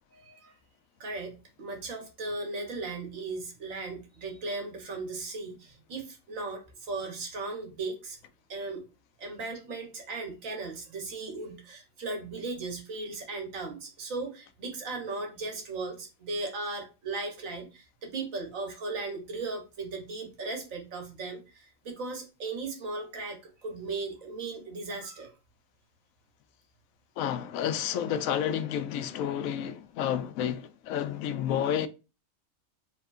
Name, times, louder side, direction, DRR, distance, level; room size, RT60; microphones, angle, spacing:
voice 1, 0.2-0.5 1.0-8.2 8.5-8.8 9.2-25.3, right 3 dB, 75° right, 1.7 m, -37 dB
voice 2, 27.2-31.9, left 9 dB, 80° left, 1.0 m, -30 dB
4.7 x 3.5 x 2.4 m
omnidirectional pair, 1.4 m